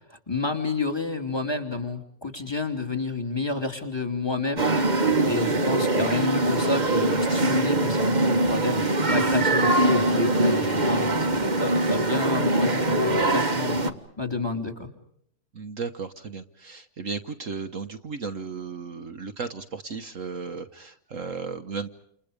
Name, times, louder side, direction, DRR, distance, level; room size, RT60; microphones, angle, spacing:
voice 1, 0.1-14.9, left 3 dB, 15° left, 7 dB, 3.1 m, -30 dB
sound 1, 4.6-13.9, right 2 dB, 30° right, 1.5 m, -23 dB
voice 2, 15.5-21.9, right 5 dB, 55° right, 8 dB, 1.5 m, -35 dB
30.0 x 29.0 x 5.2 m, 0.71 s
omnidirectional pair, 1.7 m